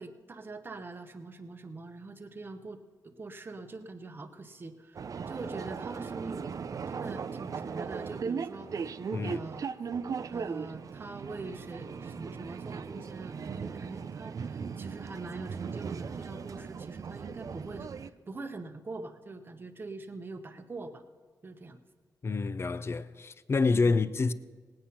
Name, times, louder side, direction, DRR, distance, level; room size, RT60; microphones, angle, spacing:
voice 1, 0.0-6.5 6.9-8.7 9.2-9.6 10.3-21.0 21.4-21.8, right 3 dB, 30° right, 0.8 m, -43 dB
sound 1, 4.9-18.1, right 6 dB, 50° right, 0.4 m, -38 dB
voice 2, 22.2-24.3, left 4 dB, 35° left, 0.5 m, -28 dB
18.5 x 8.8 x 5.8 m
wide cardioid pair, 120°, 7 cm